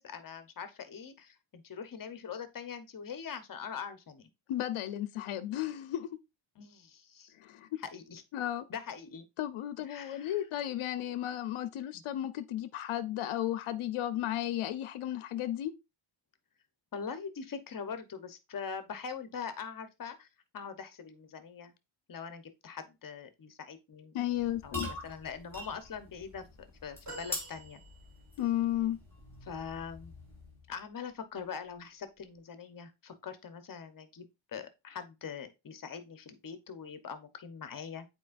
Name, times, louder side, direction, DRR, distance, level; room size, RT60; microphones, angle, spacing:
voice 1, 0.0-4.3 6.6-7.3 7.9-8.2 8.7-9.2 9.9-10.4 11.9-12.0 16.9-20.3 20.5-21.7 22.1-24.1 24.6-26.4 26.8-27.8 29.4-30.1 30.7-38.1, left 6 dB, 40° left, 1.0 m, -43 dB
voice 2, 4.5-6.1 7.4-7.7 8.3-8.6 9.4-15.7 24.1-24.9 28.4-29.0, left 12 dB, 75° left, 0.8 m, -34 dB
sound 1, 24.3-30.7, left 2 dB, 5° left, 4.0 m, -44 dB
sound 2, 27.1-28.5 29.2-29.3, right 3 dB, 35° right, 3.3 m, -48 dB
8.3 x 4.5 x 2.5 m
cardioid pair, 130°, 50 cm